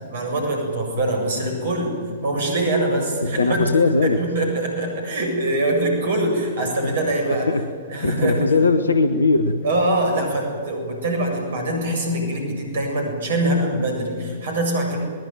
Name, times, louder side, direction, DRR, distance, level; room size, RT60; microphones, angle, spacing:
voice 1, 0.1-3.7 4.0-7.5 7.9-8.5 9.6-15.0, right 1 dB, 55° right, 2 dB, 7.8 m, -23 dB
voice 2, 3.2-4.2 7.3-7.7 8.0-9.6, left 3 dB, 75° left, 10 dB, 1.2 m, -19 dB
22.5 x 21.0 x 9.1 m, 2.1 s
figure-of-eight pair, 110°, 0 cm